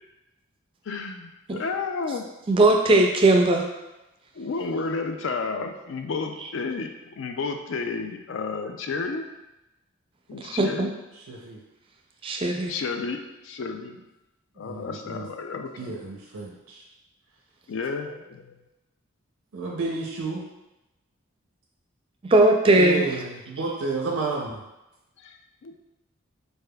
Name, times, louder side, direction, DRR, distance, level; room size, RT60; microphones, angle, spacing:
voice 1, 0.9-2.3 4.3-9.3 10.3-10.9 12.7-14.0 14.6-15.9 17.7-18.5 25.2-25.7, left 4 dB, 65° left, 6 dB, 0.3 m, -31 dB
voice 2, 2.5-3.7 10.4-10.9 12.2-12.7 22.3-23.0, right 2 dB, 25° right, 2 dB, 0.3 m, -19 dB
voice 3, 11.1-11.6 12.3-12.4 14.6-15.3 15.8-16.8 19.5-20.4 22.7-24.6, right 3 dB, 85° right, -2 dB, 0.5 m, -31 dB
4.1 x 3.5 x 2.2 m, 0.98 s
head